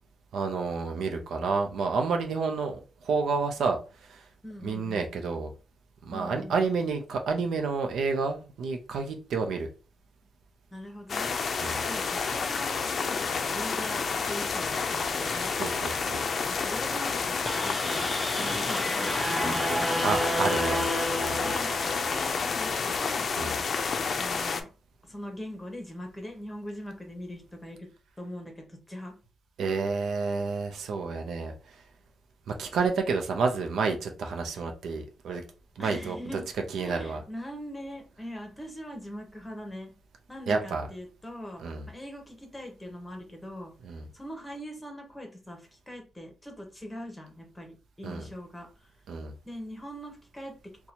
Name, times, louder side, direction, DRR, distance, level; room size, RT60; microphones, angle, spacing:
voice 1, 0.3-4.2 4.6-5.5 6.0-9.7 11.6-11.9 15.2-16.2 20.0-20.8 21.2-21.5 23.4-23.6 29.6-31.8 32.5-35.4 35.8-36.2 36.7-37.2 40.5-40.9 41.6-41.8 43.8-44.1 48.0-48.2 49.1-49.3, right 4 dB, 80° right, 0.6 m, -30 dB
voice 2, 4.4-5.1 6.1-6.8 10.7-11.4 11.8-15.5 16.5-20.1 21.3-23.3 24.2-24.7 25.0-27.9 28.2-29.1 35.8-36.4 36.8-39.9 40.3-43.7 44.1-48.7 49.4-50.9, equal, 10° left, 1.0 m, -42 dB
sound 1, 11.1-24.6, left 5 dB, 45° left, 0.4 m, -30 dB
sound 2, 17.4-22.7, equal, 5° right, 0.5 m, -31 dB
2.9 x 2.3 x 4.0 m
cardioid pair, 120°, 0 cm